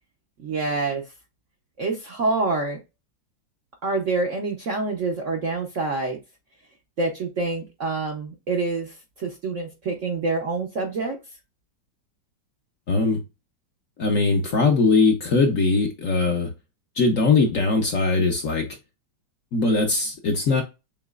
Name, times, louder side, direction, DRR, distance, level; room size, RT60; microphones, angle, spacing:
voice 1, 0.4-1.0 1.8-2.8 3.8-6.2 7.0-11.2, right 3 dB, 55° right, 0.8 m, -26 dB
voice 2, 12.9-13.2 14.0-16.5 16.9-18.7 19.5-20.6, left 3 dB, 55° left, 1.0 m, -20 dB
7.2 x 2.9 x 2.3 m
omnidirectional pair, 2.1 m